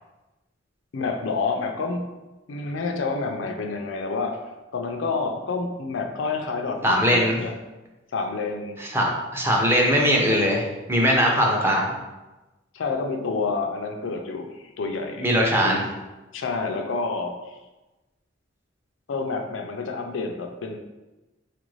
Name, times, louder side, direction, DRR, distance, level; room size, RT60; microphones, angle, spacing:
voice 1, 0.9-2.1 2.5-4.4 4.7-7.6 8.1-8.8 12.7-14.5 14.8-15.3 15.6-15.9 16.3-17.5 19.1-20.8, left 4 dB, 80° left, 4 dB, 0.4 m, -28 dB
voice 2, 6.8-7.4 8.8-11.9 15.2-15.8, equal, 10° right, -2 dB, 0.5 m, -21 dB
4.3 x 2.5 x 3.1 m, 1.1 s
head